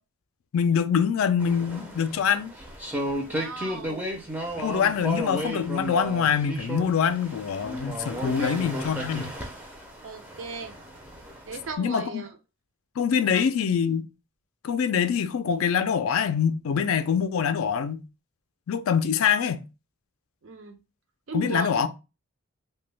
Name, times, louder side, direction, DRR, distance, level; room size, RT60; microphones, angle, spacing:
voice 1, 0.5-2.5 4.6-9.3 11.8-12.2 13.0-14.1 14.6-18.0 18.7-19.6 21.3-21.9, left 7 dB, 70° left, 0.3 m, -24 dB
sound 1, 1.4-11.7, equal, 10° right, 0.5 m, -34 dB
voice 2, 3.1-4.2 8.1-8.6 10.0-10.7 11.5-12.4 13.3-13.4 20.4-20.8 21.3-21.9, right 4 dB, 60° right, 0.5 m, -37 dB
3.0 x 2.2 x 3.2 m
head